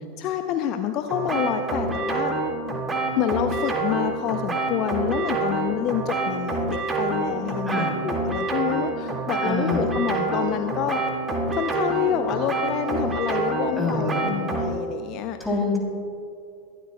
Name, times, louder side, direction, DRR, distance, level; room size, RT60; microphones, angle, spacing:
voice 1, 0.2-2.4 3.2-11.0 11.5-15.4, left 10 dB, 40° left, 8 dB, 0.6 m, -27 dB
sound 1, 1.1-14.7, right 3 dB, 20° right, 2.0 m, -27 dB
voice 2, 7.7-8.0 9.4-9.9 13.8-14.3 15.4-15.8, left 2 dB, 5° left, -1 dB, 3.0 m, -26 dB
22.0 x 12.5 x 2.2 m, 2.6 s
figure-of-eight pair, 85°, 0 cm